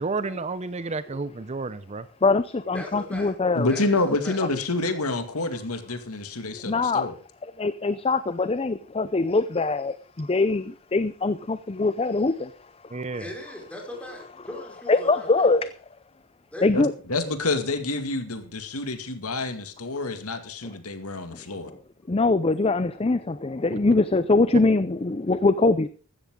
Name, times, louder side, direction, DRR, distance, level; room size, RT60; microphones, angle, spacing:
voice 1, 0.0-2.1 12.9-13.3 23.7-23.8, right 3 dB, 30° right, 0.6 m, -31 dB
voice 2, 2.2-3.7 6.5-7.1 7.4-12.5 12.8-13.0 14.9-15.7 16.6-16.9 21.3-21.4 22.1-25.9, left 3 dB, 25° left, 0.5 m, -23 dB
voice 3, 2.7-3.4 3.6-4.4 13.1-15.5 16.5-16.7, left 1 dB, 5° left, 4.9 m, -39 dB
voice 4, 3.6-7.1 16.7-21.7, left 2 dB, 80° left, 2.2 m, -28 dB
15.5 x 13.0 x 3.7 m
head